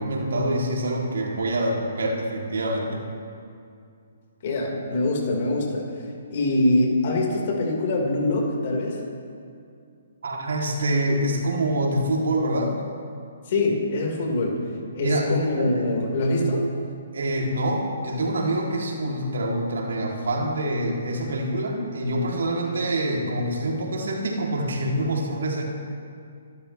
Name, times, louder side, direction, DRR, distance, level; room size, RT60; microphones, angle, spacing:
voice 1, 0.0-3.0 10.2-12.8 15.0-15.7 17.1-25.6, right 1 dB, 70° right, -1 dB, 3.1 m, -26 dB
voice 2, 4.4-9.0 13.4-14.6 14.9-16.6, left 2 dB, 50° left, -1 dB, 4.6 m, -24 dB
27.5 x 12.5 x 3.4 m, 2.4 s
figure-of-eight pair, 135°, 0 cm